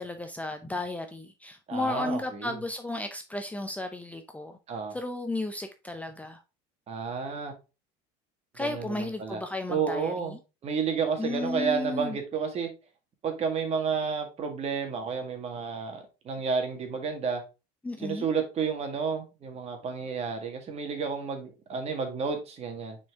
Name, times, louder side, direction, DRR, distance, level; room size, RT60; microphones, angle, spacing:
voice 1, 0.0-4.6 4.9-6.4 8.5-10.4 11.2-12.2 17.8-18.3, left 2 dB, 10° left, 0.6 m, -34 dB
voice 2, 1.7-2.6 4.7-5.0 6.9-7.5 8.6-9.4 9.7-10.4 10.6-12.7 13.2-17.4 18.0-23.0, right 5 dB, 40° right, 1.8 m, -31 dB
6.2 x 4.5 x 3.6 m
supercardioid pair, 115°, 17 cm